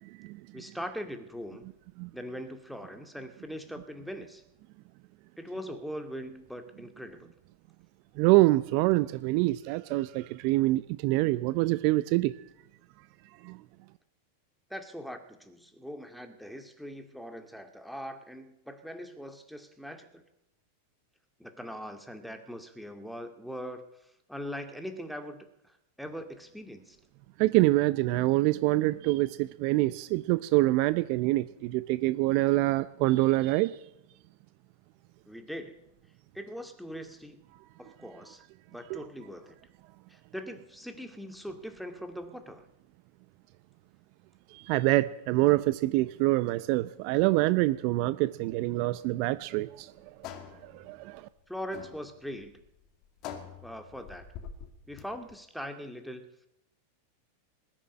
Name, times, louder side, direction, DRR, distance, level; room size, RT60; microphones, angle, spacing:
voice 1, 0.5-1.6 2.1-4.4 5.4-7.3 14.7-20.2 21.4-27.0 35.3-35.8 36.3-37.4 37.8-38.4 38.7-39.6 40.1-42.7 51.5-52.6 53.6-54.3 54.9-56.3, equal, ahead, 6 dB, 2.1 m, -41 dB
voice 2, 8.2-12.3 13.4-13.6 27.4-33.7 38.9-39.0 44.5-49.9 50.7-51.2, right 19 dB, 50° right, 15 dB, 0.6 m, -25 dB
sound 1, 49.2-55.4, left 8 dB, 45° left, 2.4 m, -46 dB
19.5 x 7.4 x 9.7 m, 0.82 s
figure-of-eight pair, 90°, 0 cm